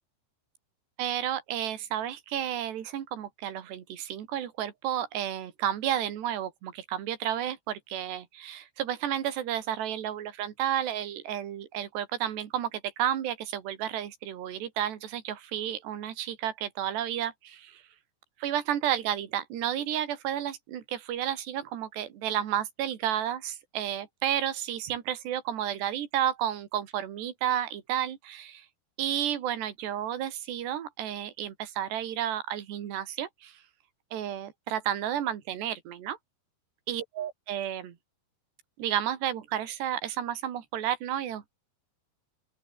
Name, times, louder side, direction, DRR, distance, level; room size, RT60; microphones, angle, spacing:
voice 1, 1.0-17.8 18.4-28.7 29.0-33.6 34.1-36.2 36.9-38.0 38.8-41.5, right 11 dB, 80° right, 4.5 m, -32 dB
open air
omnidirectional pair, 4.8 m